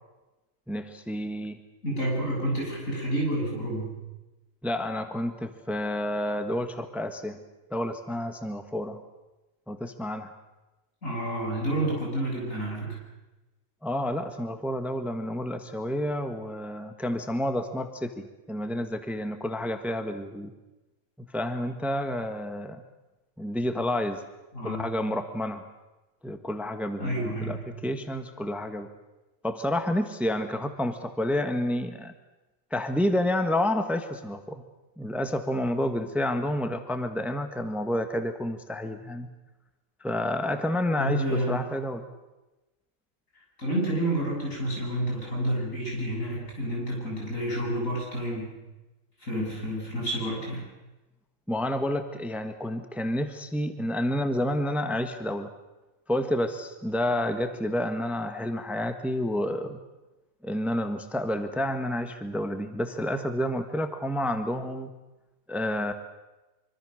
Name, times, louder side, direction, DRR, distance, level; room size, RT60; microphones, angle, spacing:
voice 1, 0.7-1.6 4.6-7.4 7.7-9.0 9.7-10.3 13.8-20.5 21.3-22.8 23.4-24.2 24.6-25.7 26.2-28.9 29.4-32.1 32.7-34.6 35.0-39.3 40.0-42.1 51.5-55.5 56.1-59.8 60.4-64.9 65.5-65.9, left 1 dB, ahead, 7 dB, 1.4 m, -29 dB
voice 2, 1.8-3.9 11.0-13.0 24.5-25.0 27.0-27.7 41.0-41.6 43.6-48.5 49.2-50.7, right 1 dB, 75° left, -2 dB, 8.5 m, -29 dB
25.0 x 25.0 x 6.5 m, 1.1 s
omnidirectional pair, 1.4 m